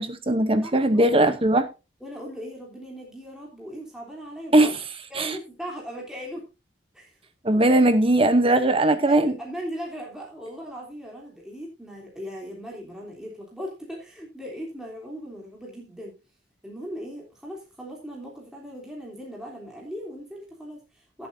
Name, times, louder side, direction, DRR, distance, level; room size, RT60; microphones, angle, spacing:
voice 1, 0.0-1.7 4.5-4.8 5.1-5.4 7.4-9.3, right 1 dB, 30° right, 0.9 m, -19 dB
voice 2, 0.6-1.4 2.0-4.7 5.1-6.4 6.9-7.2 7.5-7.7 9.0-16.1 16.6-21.3, equal, 5° right, 3.3 m, -38 dB
17.5 x 7.9 x 2.7 m
head